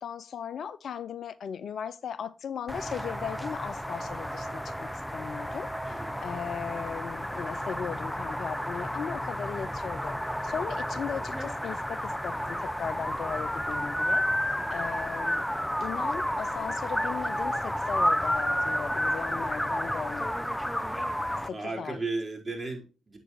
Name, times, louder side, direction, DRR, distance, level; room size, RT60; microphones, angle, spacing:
voice 1, 0.0-10.1 10.4-14.3 14.7-15.4 15.8-20.5 21.5-22.0, left 7 dB, 60° left, 0.4 m, -37 dB
sound 1, 2.7-21.5, equal, 5° left, 0.7 m, -31 dB
voice 2, 14.5-15.2 15.5-15.8 21.5-23.2, right 3 dB, 30° right, 4.4 m, -37 dB
7.9 x 7.9 x 3.0 m
hypercardioid pair, 45°, 0 cm